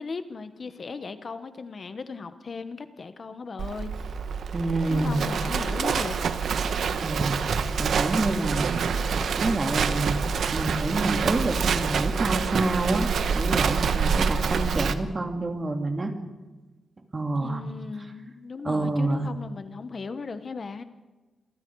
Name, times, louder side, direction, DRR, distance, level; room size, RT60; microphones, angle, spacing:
voice 1, 0.0-3.9 4.9-6.2 17.4-20.8, left 4 dB, 45° left, 10 dB, 1.2 m, -37 dB
Livestock farm animals working animals, 3.6-14.9, right 6 dB, 80° right, 1.2 m, -26 dB
voice 2, 4.5-5.2 7.0-7.5 7.8-8.7 9.3-16.1 17.1-17.6 18.6-19.3, right 2 dB, 30° right, 4 dB, 2.6 m, -27 dB
28.0 x 22.5 x 4.8 m, 1.2 s
wide cardioid pair, 115°, 0 cm